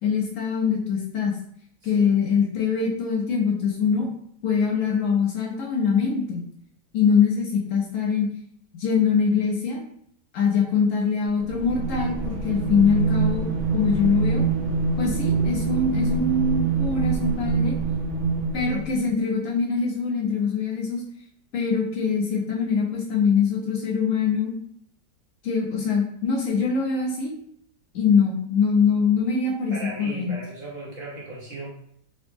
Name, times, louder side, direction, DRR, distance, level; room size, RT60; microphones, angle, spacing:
voice 1, 0.0-1.4 1.8-4.1 4.4-6.4 6.9-8.3 8.8-9.8 10.3-13.5 13.7-14.4 15.0-17.8 18.5-21.0 21.5-24.5 25.4-27.3 27.9-30.3, left 5 dB, 65° left, -1 dB, 0.8 m, -23 dB
sound 1, 11.4-19.1, right 4 dB, 75° right, 0.6 m, -25 dB
voice 2, 29.7-31.7, right 2 dB, 55° right, -5 dB, 1.2 m, -37 dB
4.0 x 2.0 x 3.2 m, 0.67 s
omnidirectional pair, 1.9 m